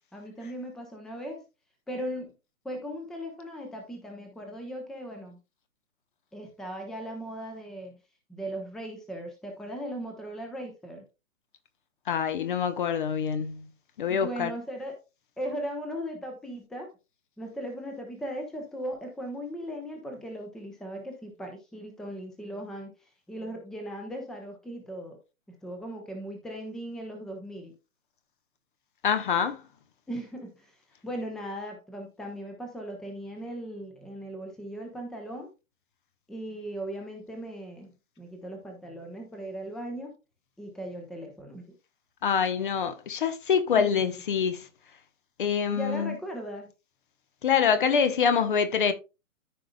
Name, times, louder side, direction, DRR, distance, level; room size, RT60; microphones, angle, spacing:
voice 1, 0.1-1.4 1.9-2.3 2.6-5.4 6.3-8.0 8.3-11.0 14.1-15.0 15.4-16.9 17.4-22.9 23.3-25.2 25.5-27.7 30.1-30.7 31.0-35.5 36.3-40.1 40.6-41.7 43.7-44.2 45.7-46.7, equal, ahead, 0.9 m, -38 dB
voice 2, 12.1-13.7 14.0-14.5 29.0-29.6 42.2-44.7 45.4-46.2 47.4-48.9, left 7 dB, 35° left, 1.0 m, -25 dB
14.0 x 5.0 x 2.3 m
figure-of-eight pair, 130°, 43 cm